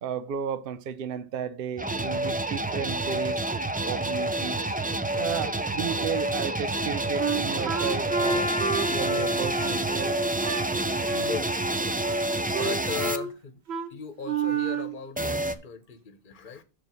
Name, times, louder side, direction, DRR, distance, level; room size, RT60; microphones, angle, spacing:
voice 1, 0.0-3.5 3.9-4.8 5.2-8.5 8.9-10.1, right 8 dB, 65° right, 0.8 m, -33 dB
sound 1, 1.8-13.2 15.2-15.6, right 1 dB, 15° right, 0.3 m, -28 dB
Wind instrument woodwind instrument, 7.2-10.7 11.1-11.3 11.6-12.3 12.5-13.3 13.7-13.9 14.2-14.9, right 7 dB, 80° right, 1.2 m, -31 dB
Trumpet, 8.1-13.2, equal, 5° left, 1.1 m, -33 dB
voice 2, 11.1-11.5 12.4-13.6 13.9-16.6, left 7 dB, 50° left, 1.1 m, -37 dB
6.8 x 4.6 x 6.7 m
omnidirectional pair, 1.1 m